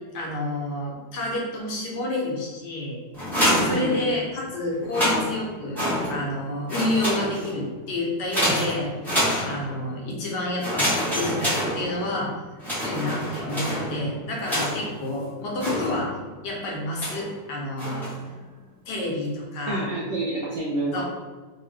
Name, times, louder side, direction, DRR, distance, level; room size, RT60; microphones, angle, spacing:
voice 1, 0.1-3.0 3.6-5.8 6.1-8.9 9.4-12.3 12.8-16.2 16.4-18.1 18.9-19.9 20.9-21.0, left 1 dB, 75° left, -2 dB, 1.4 m, -29 dB
sound 1, 3.1-4.4 4.8-6.4 6.7-7.6 8.3-9.9 10.6-12.2 12.6-15.0 15.6-16.3 17.0-17.3 17.8-18.3, equal, ahead, 0.8 m, -27 dB
voice 2, 3.7-4.1 19.7-21.0, right 2 dB, 75° right, -5 dB, 0.7 m, -28 dB
2.9 x 2.7 x 3.2 m, 1.4 s
omnidirectional pair, 1.9 m